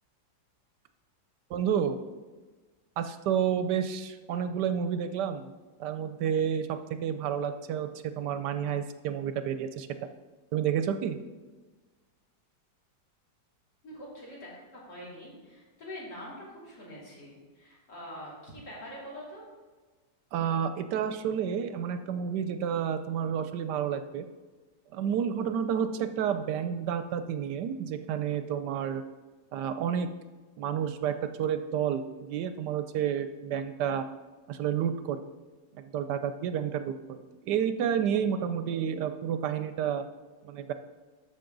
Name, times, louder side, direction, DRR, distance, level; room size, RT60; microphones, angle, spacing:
voice 1, 1.5-2.0 3.0-5.5 5.8-9.9 10.5-11.2 20.3-24.3 24.9-29.0 29.5-30.1 30.6-34.1 34.5-35.3 35.7-40.1 40.4-40.7, right 8 dB, 75° right, 10 dB, 1.1 m, -30 dB
voice 2, 13.8-19.4, equal, 65° left, -7 dB, 4.0 m, -44 dB
13.0 x 5.8 x 3.9 m, 1.3 s
omnidirectional pair, 2.0 m